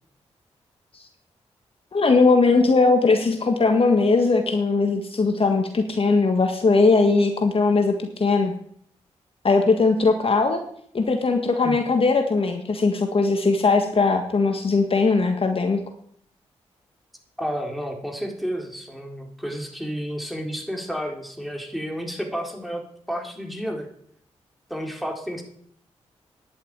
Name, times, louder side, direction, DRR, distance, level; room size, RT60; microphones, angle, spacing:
voice 1, 1.9-8.5 9.4-10.6 10.9-15.8, left 3 dB, 50° left, 5 dB, 1.8 m, -19 dB
voice 2, 17.4-22.8 23.1-23.9 24.7-25.4, equal, ahead, 2 dB, 4.1 m, -31 dB
10.5 x 8.4 x 8.9 m, 0.64 s
supercardioid pair, 45°, 12 cm